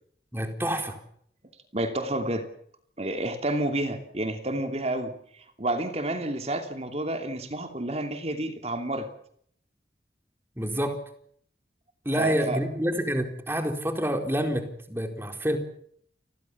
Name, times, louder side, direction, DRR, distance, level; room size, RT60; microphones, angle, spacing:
voice 1, 0.3-1.0 10.6-11.0 12.0-15.6, equal, 15° right, 6 dB, 4.2 m, -28 dB
voice 2, 1.7-2.4 3.0-9.1 12.2-12.6, right 1 dB, 35° right, 7 dB, 2.8 m, -30 dB
30.0 x 21.5 x 7.3 m, 0.66 s
head